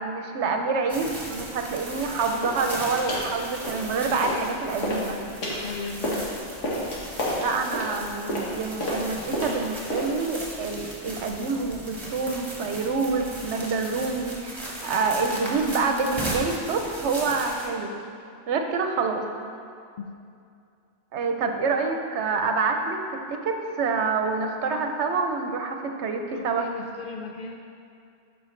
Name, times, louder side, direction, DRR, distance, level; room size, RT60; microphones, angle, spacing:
voice 1, 0.0-5.2 7.4-17.9 18.5-19.2 21.1-23.0 23.3-26.7, right 4 dB, 70° right, 4 dB, 0.9 m, -27 dB
sound 1, 0.9-17.7, right 1 dB, 25° right, 1.3 m, -37 dB
sound 2, 2.4-2.7 3.1-3.3 3.6-4.5 4.8-10.3, left 1 dB, 85° left, 1.7 m, -30 dB
voice 2, 5.6-6.3 20.0-20.2 26.3-27.6, left 5 dB, 60° left, 2 dB, 0.6 m, -36 dB
12.5 x 5.2 x 3.2 m, 2.4 s
omnidirectional pair, 1.2 m